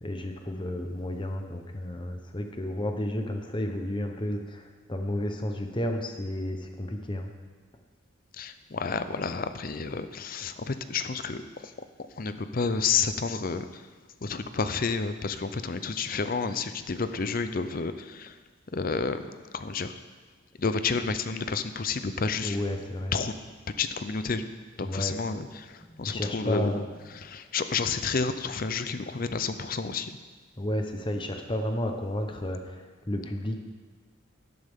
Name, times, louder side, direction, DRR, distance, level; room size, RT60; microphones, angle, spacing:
voice 1, 0.0-7.3 22.4-23.1 24.8-25.2 25.8-26.9 27.2-27.3 30.6-33.6, left 1 dB, 25° left, 4 dB, 0.9 m, -32 dB
voice 2, 8.3-11.7 12.1-13.9 14.2-18.4 18.7-19.3 19.5-19.9 20.6-22.7 23.1-23.3 23.8-24.4 24.8-26.8 27.1-30.2, left 5 dB, 45° left, 11 dB, 0.5 m, -30 dB
12.0 x 11.5 x 3.7 m, 1.4 s
head